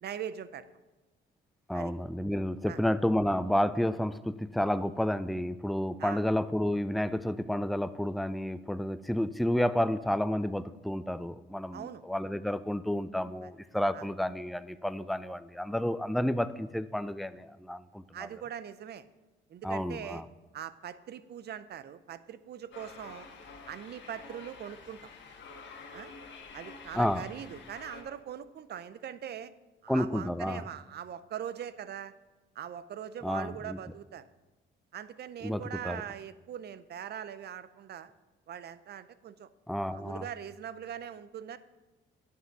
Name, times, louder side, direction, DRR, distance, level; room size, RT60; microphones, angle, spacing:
voice 1, 0.0-0.7 1.7-1.9 2.7-2.8 6.0-6.2 11.7-12.0 13.4-13.5 13.9-14.0 18.1-19.1 19.5-20.2 20.5-23.3 23.7-25.1 25.9-26.1 26.5-29.5 29.8-32.1 32.6-34.2 34.9-38.1 38.5-39.5 39.9-41.6, right 9 dB, 55° right, 14 dB, 0.6 m, -41 dB
voice 2, 1.7-18.3 19.6-20.3 26.9-27.2 29.9-30.6 33.2-33.8 35.4-36.0 39.7-40.3, left 1 dB, ahead, 13 dB, 0.4 m, -31 dB
sound 1, 22.7-28.0, left 4 dB, 70° left, 1.4 m, -49 dB
10.0 x 5.5 x 6.1 m, 1.1 s
cardioid pair, 90°, 20 cm